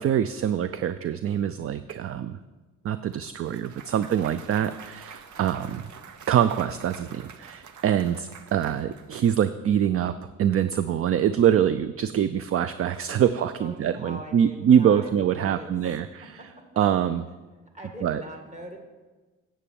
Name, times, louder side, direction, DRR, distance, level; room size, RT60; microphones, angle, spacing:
voice 1, 0.0-2.4 2.8-5.8 6.3-16.4 16.8-17.3 18.0-18.2, right 9 dB, 50° right, 13 dB, 0.5 m, -24 dB
Clapping / Cheering / Applause, 3.1-9.4, right 6 dB, 75° right, 1.0 m, -47 dB
voice 2, 5.3-5.7 13.1-16.6 17.7-18.8, equal, 25° right, 1 dB, 2.2 m, -43 dB
9.8 x 7.6 x 7.0 m, 1.3 s
cardioid pair, 90°, 30 cm